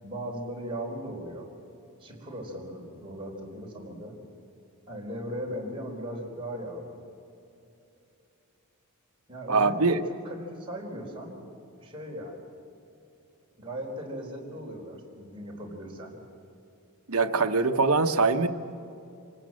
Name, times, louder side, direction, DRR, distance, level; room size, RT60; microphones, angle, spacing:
voice 1, 0.0-1.5 2.0-4.2 4.9-7.0 9.3-9.9 10.2-11.4 11.8-12.4 13.6-16.2, equal, 25° right, -2 dB, 4.5 m, -38 dB
voice 2, 9.5-10.0 17.1-18.5, right 3 dB, 75° right, 7 dB, 1.1 m, -23 dB
26.0 x 19.0 x 7.7 m, 2.8 s
head